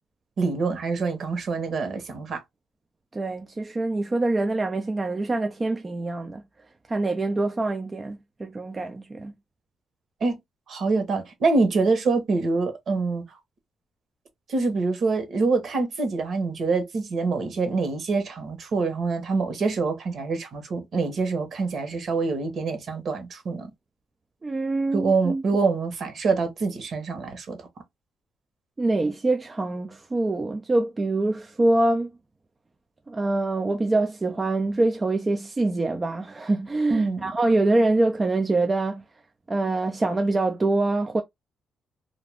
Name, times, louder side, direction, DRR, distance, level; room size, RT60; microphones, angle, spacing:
voice 1, 0.4-2.4 10.2-10.4 10.7-13.2 14.5-23.7 24.9-27.6 36.9-37.3, right 4 dB, 60° right, 1.1 m, -25 dB
voice 2, 3.1-6.4 6.9-9.3 24.4-25.4 28.8-32.1 33.1-39.0 39.5-41.2, right 2 dB, 25° right, 0.4 m, -25 dB
2.5 x 2.2 x 3.3 m
cardioid pair, 90°, 0 cm